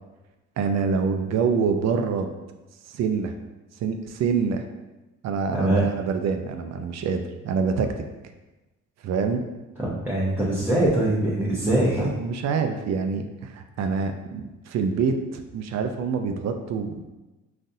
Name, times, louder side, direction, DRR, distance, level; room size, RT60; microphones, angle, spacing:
voice 1, 0.6-2.3 2.9-3.3 3.8-4.6 5.2-8.0 9.0-9.4 11.4-11.8 12.2-17.1, right 5 dB, 60° right, 6 dB, 0.5 m, -26 dB
voice 2, 5.5-5.9 9.8-12.1, right 1 dB, 5° right, -7 dB, 0.7 m, -23 dB
4.0 x 2.5 x 2.6 m, 1.1 s
cardioid pair, 90°, 30 cm